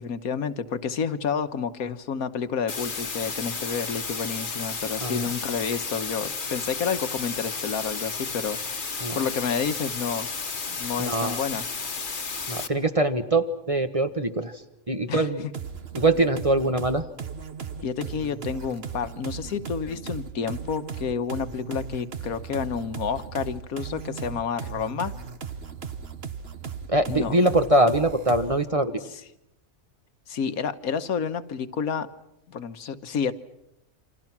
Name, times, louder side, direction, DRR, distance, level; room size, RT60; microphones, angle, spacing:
voice 1, 0.0-10.3 10.8-11.6 15.1-15.3 17.8-25.1 27.1-27.3 30.3-32.1 32.5-33.3, left 6 dB, 80° left, 10 dB, 1.6 m, -30 dB
sound 1, 2.7-12.7, left 4 dB, 35° left, 1.4 m, -32 dB
voice 2, 11.0-11.4 12.5-15.5 15.9-17.0 26.9-29.0, right 1 dB, 25° right, 8 dB, 1.3 m, -23 dB
sound 2, 15.5-28.7, right 6 dB, 45° right, 1.3 m, -37 dB
29.0 x 26.0 x 6.0 m, 0.83 s
omnidirectional pair, 1.5 m